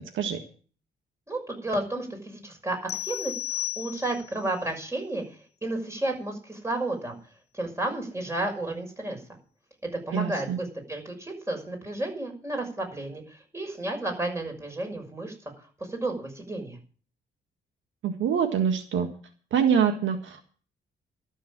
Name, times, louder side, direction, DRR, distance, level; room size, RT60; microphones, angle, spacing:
voice 1, 1.3-2.8 3.0-5.2 5.6-7.2 7.5-9.2 10.1-15.3 15.9-16.8, right 2 dB, 15° right, 3 dB, 6.2 m, -32 dB
sound 1, 2.9-4.4, left 13 dB, 55° left, 0.7 m, -34 dB
voice 2, 10.1-10.6 18.0-19.1 19.5-20.4, right 7 dB, 75° right, 6 dB, 1.7 m, -25 dB
13.0 x 7.4 x 8.8 m, 0.41 s
cardioid pair, 90°, 20 cm